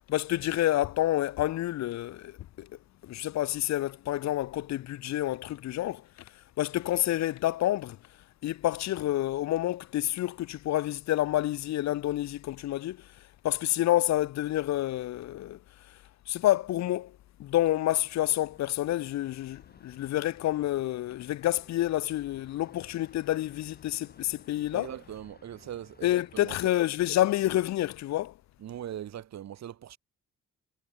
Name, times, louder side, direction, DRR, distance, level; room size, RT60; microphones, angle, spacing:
voice 1, 0.1-2.7 3.0-8.0 8.4-13.1 13.4-15.6 15.9-16.0 16.3-24.9 26.0-28.3, left 14 dB, 65° left, 0.6 m, -28 dB
sound 1, 17.6-26.6, left 4 dB, 30° left, 5.8 m, -58 dB
voice 2, 24.7-26.5 28.6-30.0, right 11 dB, 60° right, 1.7 m, -41 dB
cardioid pair, 90°, 30 cm